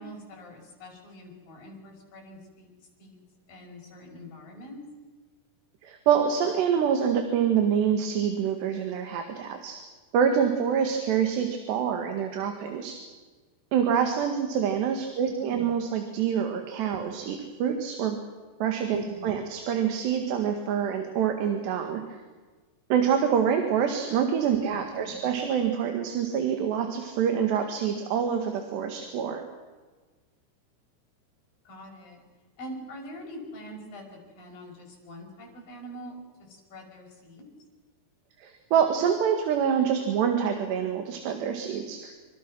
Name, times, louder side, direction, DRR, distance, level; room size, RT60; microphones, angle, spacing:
voice 1, 0.0-2.7 3.0-3.2 3.5-4.8 11.7-11.8 15.2-15.6 18.9-19.5 24.6-25.3 31.7-32.2 32.6-37.5, equal, 50° left, 0 dB, 7.3 m, -44 dB
voice 2, 5.8-9.8 10.1-13.0 13.7-18.2 18.6-22.0 22.9-29.4 38.4-42.1, right 8 dB, 75° right, 5 dB, 4.0 m, -26 dB
27.5 x 25.0 x 6.3 m, 1.4 s
omnidirectional pair, 5.1 m